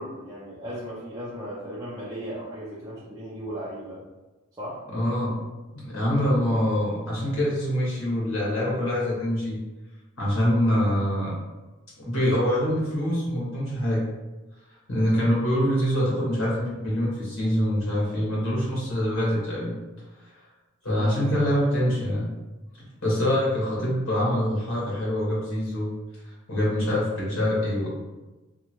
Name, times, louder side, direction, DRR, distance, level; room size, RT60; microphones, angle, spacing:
voice 1, 0.0-4.0 4.6-4.8 20.9-21.2, equal, 15° right, -8 dB, 0.4 m, -36 dB
voice 2, 4.9-5.3 5.7-9.6 10.2-11.4 12.0-14.0 14.9-19.7 20.8-22.3 23.0-25.9 26.5-27.9, equal, 80° left, -6 dB, 1.3 m, -25 dB
2.8 x 2.3 x 2.8 m, 1.1 s
head